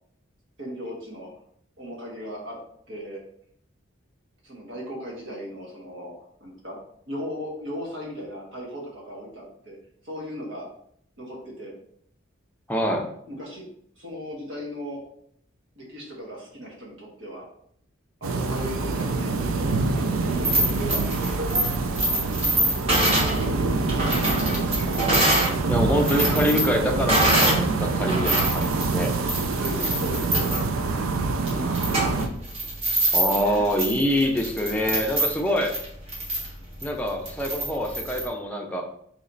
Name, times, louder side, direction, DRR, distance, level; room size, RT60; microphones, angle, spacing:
voice 1, 0.6-1.3 1.8-2.6 2.9-3.2 4.4-6.1 6.4-6.8 7.1-9.8 10.0-10.7 11.2-11.7 13.3-13.6 13.9-15.0 15.7-17.5 18.2-21.0 22.1-22.5 22.8-23.2 23.5-25.0 29.6-31.0 31.5-31.8 32.8-32.9 33.3-33.6, equal, 65° right, -2 dB, 1.3 m, -37 dB
voice 2, 12.7-13.1 25.7-29.1 33.1-35.7 36.8-38.8, equal, 5° left, 1 dB, 0.5 m, -25 dB
sound 1, 18.2-32.3, right 3 dB, 85° right, 0.4 m, -26 dB
sound 2, 20.3-25.5 25.9-27.7 28.0-38.3, right 1 dB, 30° right, 1.2 m, -25 dB
3.1 x 2.9 x 3.9 m, 0.67 s
head